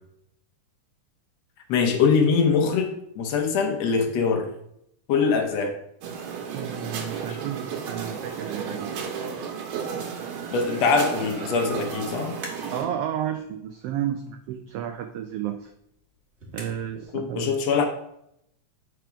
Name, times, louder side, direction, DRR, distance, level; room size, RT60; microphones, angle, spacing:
voice 1, 1.7-4.5 5.1-5.7 10.5-12.4 17.1-17.9, left 5 dB, 70° left, 3 dB, 1.9 m, -23 dB
sound 1, 6.0-12.8, right 6 dB, 70° right, 2.2 m, -33 dB
voice 2, 6.5-9.0 9.9-10.0 12.7-15.7 16.5-17.6, right 10 dB, 90° right, 6 dB, 1.3 m, -32 dB
sound 2, 12.3-13.0 13.4-17.1, right 2 dB, 30° right, 1.4 m, -46 dB
8.1 x 4.7 x 5.0 m, 0.78 s
omnidirectional pair, 3.4 m